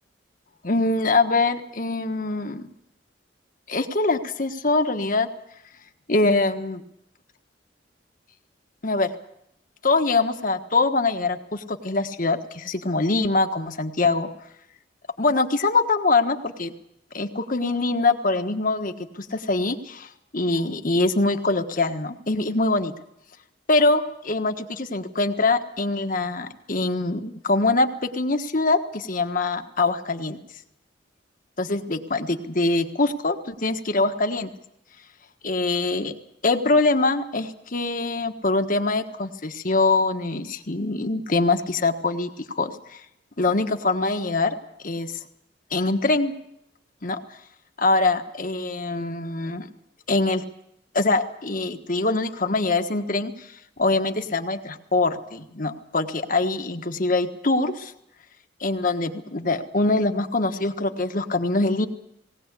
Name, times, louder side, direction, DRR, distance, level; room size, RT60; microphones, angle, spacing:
voice 1, 0.6-2.7 3.7-5.3 6.1-6.8 8.8-9.1 9.8-14.3 15.2-16.7 17.1-22.9 23.7-30.4 31.6-34.5 35.4-36.1 36.4-43.0 43.4-44.5 44.8-45.2 45.7-46.3 47.0-47.2 47.8-49.7 50.1-50.4 50.9-53.3 53.8-57.9 58.6-61.9, left 3 dB, 45° left, 7 dB, 1.5 m, -23 dB
19.0 x 18.5 x 8.3 m, 0.79 s
head